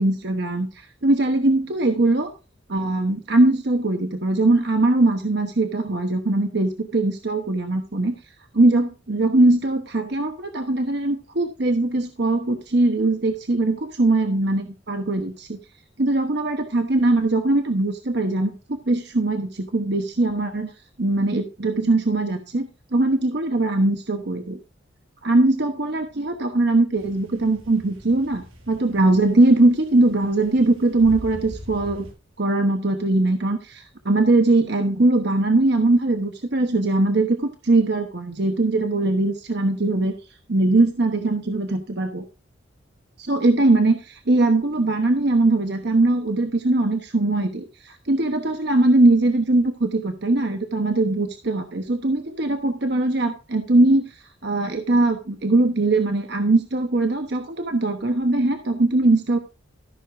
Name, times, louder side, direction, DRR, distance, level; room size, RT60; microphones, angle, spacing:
voice 1, 0.0-2.3 2.7-8.2 8.5-15.6 16.0-18.5 18.9-20.7 21.0-24.6 25.2-32.0 32.4-40.1 40.5-42.2 43.2-59.4, right 2 dB, 55° right, 6 dB, 1.1 m, -21 dB
sound 1, 27.0-32.1, equal, 90° right, 5.1 m, -43 dB
14.0 x 6.5 x 3.6 m, 0.33 s
head